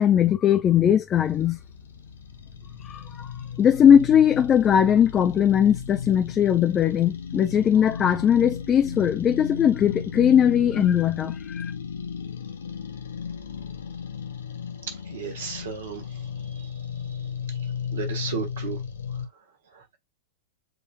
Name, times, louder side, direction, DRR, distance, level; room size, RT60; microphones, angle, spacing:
voice 1, 0.0-1.6 2.8-3.3 3.6-11.7, left 9 dB, 25° left, 0.4 m, -20 dB
sound 1, 1.2-19.3, left 7 dB, 65° left, 0.8 m, -35 dB
voice 2, 15.1-16.0 17.9-18.8, right 6 dB, 60° right, 1.2 m, -33 dB
7.6 x 2.5 x 2.3 m
figure-of-eight pair, 90°, 0 cm